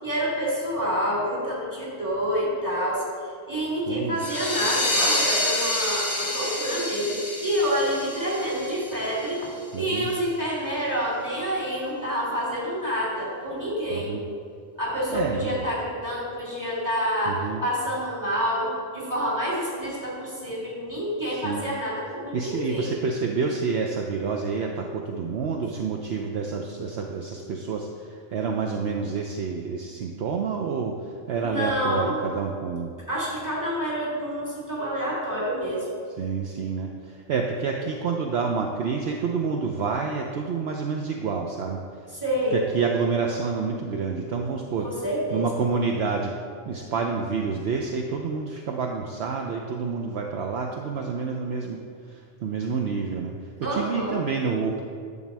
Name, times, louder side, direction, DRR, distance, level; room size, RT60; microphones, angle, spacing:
voice 1, 0.0-3.0 3.5-14.1 14.8-22.9 31.4-32.2 33.1-36.0 42.1-42.6 44.8-45.6 53.6-54.2, equal, 15° right, -5 dB, 2.7 m, -28 dB
voice 2, 3.9-4.2 9.7-10.1 13.9-14.2 15.1-15.6 17.3-17.6 21.4-21.7 22.3-31.0 31.3-32.9 36.2-41.8 42.5-44.9 45.3-46.3 46.7-51.8 52.1-53.3 53.6-54.8, right 5 dB, 65° right, 1 dB, 0.9 m, -28 dB
sound 1, 4.2-9.5, left 1 dB, 10° left, 1.5 m, -28 dB
10.5 x 4.1 x 7.3 m, 2.3 s
omnidirectional pair, 1.2 m